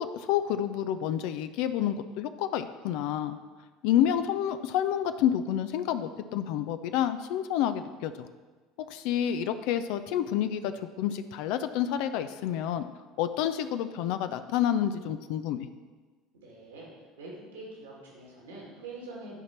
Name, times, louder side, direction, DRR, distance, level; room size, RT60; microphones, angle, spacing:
voice 1, 0.0-3.4 3.8-8.3 8.8-12.8 13.2-15.7, left 10 dB, 65° left, 10 dB, 0.4 m, -29 dB
voice 2, 16.3-16.9 17.2-19.4, right 2 dB, 80° right, -4 dB, 2.1 m, -44 dB
11.5 x 4.4 x 4.4 m, 1.4 s
hypercardioid pair, 70°, 0 cm